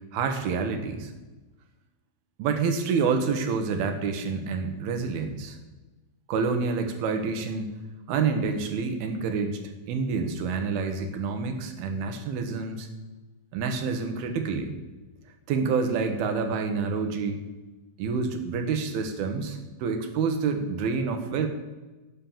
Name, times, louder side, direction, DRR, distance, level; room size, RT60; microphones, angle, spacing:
voice 1, 0.1-1.1 2.4-5.6 6.3-7.7 8.1-9.6 9.9-12.9 13.5-14.7 15.5-17.4 18.0-21.5, right 5 dB, 85° right, 6 dB, 3.1 m, -28 dB
12.0 x 6.6 x 7.2 m, 1.2 s
omnidirectional pair, 4.2 m